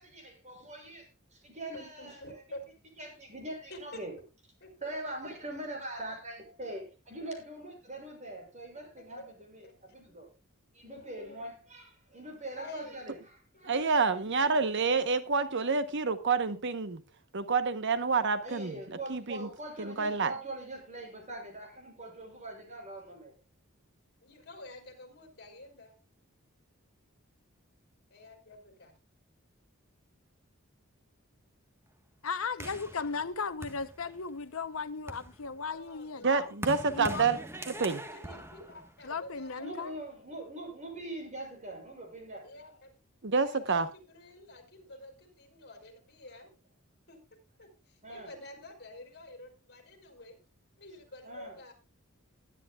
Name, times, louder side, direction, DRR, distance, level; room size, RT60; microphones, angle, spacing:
voice 1, 0.0-2.4 3.0-4.1 4.8-10.3 10.7-13.8 18.4-23.3 38.2-38.7 39.5-42.5 48.0-48.3 51.2-51.5, right 1 dB, 35° right, 6.7 m, -43 dB
voice 2, 1.7-2.7 3.7-4.0 4.6-4.7 9.2-9.3 9.6-9.7 10.0-10.2 10.9-11.4 12.6-13.0 13.5-13.9 24.2-26.0 28.1-28.9 35.7-36.3 36.9-37.0 38.1-39.9 42.4-42.9 43.3-46.5 47.1-47.2 47.6-50.4 50.8-51.7, left 1 dB, 50° left, 4.5 m, -49 dB
voice 3, 13.6-17.0 17.3-18.7 19.1-19.5 19.8-20.3 36.2-37.4 37.7-38.0 43.2-43.9, right 4 dB, 60° right, 1.0 m, -28 dB
voice 4, 32.2-36.5 36.9-37.3 39.0-39.9, left 5 dB, 70° left, 0.8 m, -36 dB
sound 1, 32.6-34.4 34.9-39.5, right 1 dB, 10° right, 1.4 m, -43 dB
21.0 x 10.5 x 2.4 m
head